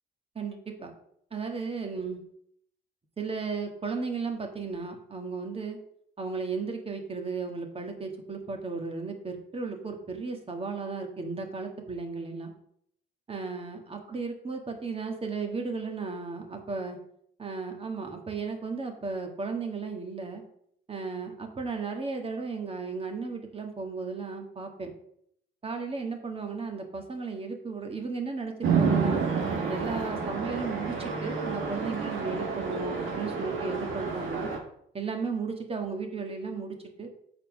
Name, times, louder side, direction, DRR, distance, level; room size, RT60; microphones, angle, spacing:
voice 1, 0.3-0.9 1.3-2.2 3.2-5.8 6.2-12.5 13.3-17.0 17.4-20.4 20.9-24.9 25.6-29.3 29.7-34.5 34.9-37.1, right 4 dB, 30° right, 4 dB, 1.6 m, -35 dB
Chatter / Traffic noise roadway noise / Train, 28.6-34.6, right 5 dB, 80° right, 1.7 m, -29 dB
7.3 x 4.3 x 6.1 m, 0.70 s
cardioid pair, 90°, 20 cm